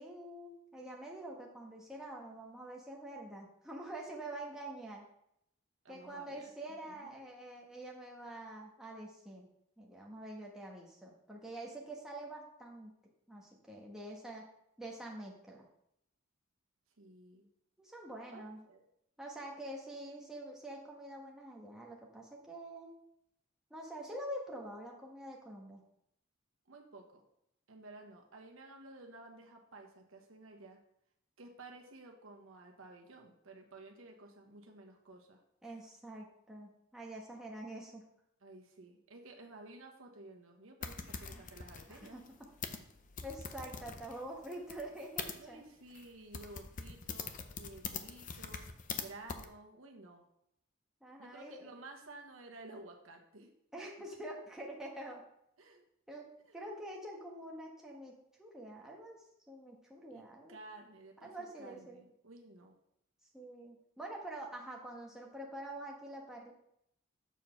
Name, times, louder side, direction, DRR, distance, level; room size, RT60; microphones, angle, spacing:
voice 1, 0.0-5.0 5.9-9.5 9.8-12.9 13.3-14.5 14.8-15.7 17.8-18.6 19.2-22.9 23.7-25.8 35.6-38.1 41.2-41.5 41.9-42.2 43.2-45.6 51.0-51.7 53.7-55.2 56.1-56.3 56.5-60.6 61.2-62.0 63.3-66.5, right 1 dB, 5° right, -3 dB, 1.2 m, -46 dB
voice 2, 5.8-6.5 6.9-7.2 17.0-17.5 18.3-18.8 26.7-27.2 27.7-30.8 31.4-35.4 38.4-42.2 45.3-48.7 49.0-50.2 51.2-53.8 55.6-55.8 56.4-56.6 60.1-62.7, right 2 dB, 80° right, 2 dB, 1.2 m, -53 dB
sound 1, 40.8-45.3 45.9-46.1 46.3-49.0 49.3-49.5, left 6 dB, 40° left, 0.6 m, -43 dB
7.2 x 4.4 x 5.7 m, 0.76 s
head